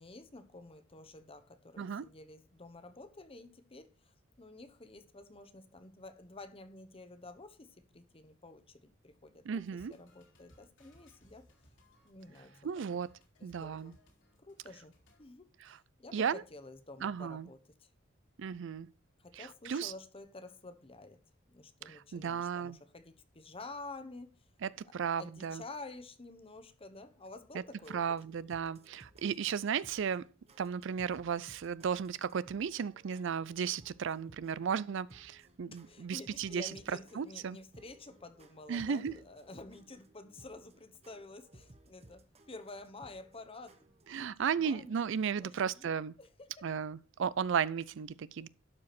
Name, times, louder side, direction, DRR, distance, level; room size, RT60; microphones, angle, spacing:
voice 1, 0.0-11.4 12.0-12.5 13.4-14.0 14.4-17.9 19.2-21.2 21.5-24.5 24.8-24.9 25.2-28.0 35.7-44.9 45.4-45.9 46.2-46.6 48.4-48.5, left 2 dB, 30° left, 1.0 m, -50 dB
voice 2, 9.5-9.9 12.6-13.1 13.4-13.9 15.6-15.8 16.1-16.4 17.0-17.5 18.4-18.9 19.3-19.9 21.9-22.8 24.6-25.6 27.5-27.6 27.9-30.3 30.6-37.6 38.7-39.1 44.1-46.2 46.6-48.5, right 7 dB, 65° right, 0.4 m, -35 dB
sound 1, 9.7-15.2, left 1 dB, 65° left, 2.7 m, -65 dB
sound 2, 27.6-44.2, right 2 dB, 30° right, 1.2 m, -61 dB
12.0 x 4.9 x 5.9 m
head